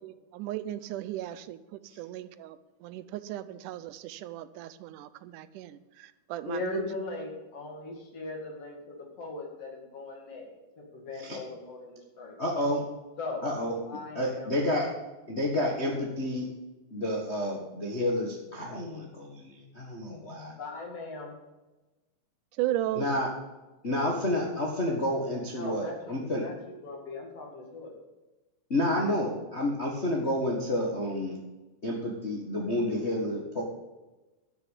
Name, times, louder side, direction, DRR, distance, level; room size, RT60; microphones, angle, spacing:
voice 1, 0.0-6.8 22.6-23.1, right 14 dB, 85° right, 14 dB, 2.1 m, -36 dB
voice 2, 6.5-10.5 10.8-12.4 13.2-13.4 13.8-14.5 20.5-21.4 25.5-26.6 26.8-27.9, left 3 dB, 50° left, 1 dB, 3.2 m, -39 dB
voice 3, 12.4-12.8 13.4-13.7 14.1-14.9 15.3-16.5 16.9-20.5 23.0-23.3 23.8-26.4 28.7-31.4 31.8-33.6, left 1 dB, 35° left, -2 dB, 1.2 m, -30 dB
11.5 x 6.7 x 8.1 m, 1.1 s
omnidirectional pair, 3.6 m